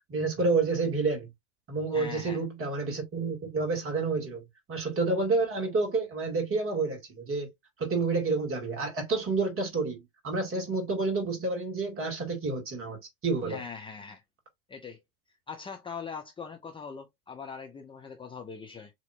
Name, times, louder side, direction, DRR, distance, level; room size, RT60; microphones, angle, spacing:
voice 1, 0.1-1.3 1.7-4.4 4.7-7.5 7.8-13.6, right 3 dB, 30° right, 2.4 m, -29 dB
voice 2, 1.9-2.4 13.5-14.2 14.7-15.0 15.5-18.9, left 5 dB, 10° left, 0.7 m, -41 dB
7.0 x 2.9 x 2.5 m
figure-of-eight pair, 75°, 42 cm